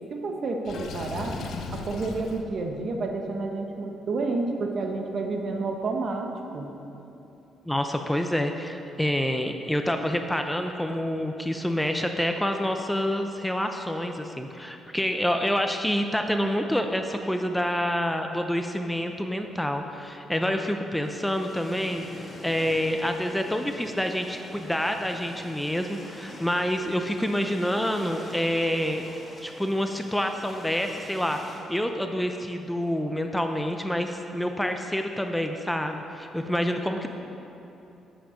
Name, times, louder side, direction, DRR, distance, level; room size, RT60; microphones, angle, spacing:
voice 1, 0.1-1.4 1.7-6.7, right 3 dB, 55° right, 3 dB, 1.1 m, -30 dB
Water / Sink (filling or washing), 0.6-2.4, left 4 dB, 70° left, 0.8 m, -36 dB
voice 2, 7.7-29.0 29.4-37.1, equal, 5° left, 5 dB, 0.6 m, -27 dB
sound 1, 21.0-31.6, left 1 dB, 20° left, 1.6 m, -45 dB
9.9 x 7.8 x 5.1 m, 2.9 s
cardioid pair, 90°, 0 cm